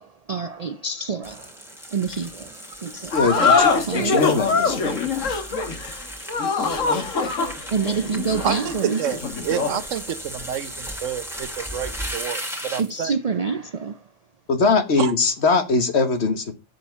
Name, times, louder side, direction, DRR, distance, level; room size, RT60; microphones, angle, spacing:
voice 1, 0.0-1.5 1.9-3.5 3.8-4.3 5.3-5.4 7.7-9.1 12.8-14.0, right 5 dB, 55° right, 0.4 m, -27 dB
sound 1, 1.2-13.1, equal, ahead, 2.2 m, -36 dB
sound 2, 3.1-9.8, left 4 dB, 85° left, 1.8 m, -23 dB
voice 2, 3.1-4.9 14.5-16.5, left 4 dB, 60° left, 1.6 m, -21 dB
voice 3, 8.4-13.1 15.0-15.1, right 9 dB, 80° right, 1.1 m, -29 dB
7.9 x 7.1 x 5.7 m
omnidirectional pair, 1.3 m